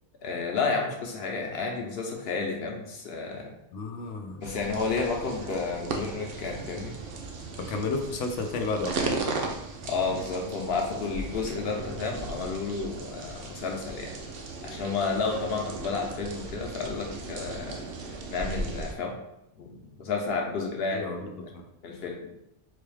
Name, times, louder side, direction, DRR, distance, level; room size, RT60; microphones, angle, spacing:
voice 1, 0.2-3.5 4.4-6.9 9.9-14.1 14.6-17.8 18.3-19.2 19.5-21.1 21.8-22.2, left 4 dB, 60° left, 1 dB, 0.9 m, -31 dB
voice 2, 3.7-4.4 7.7-9.0 20.9-21.6, left 3 dB, 90° left, 3 dB, 0.9 m, -32 dB
sound 1, 4.4-18.9, right 3 dB, 60° right, 0.7 m, -36 dB
4.1 x 2.3 x 3.2 m, 0.87 s
omnidirectional pair, 1.2 m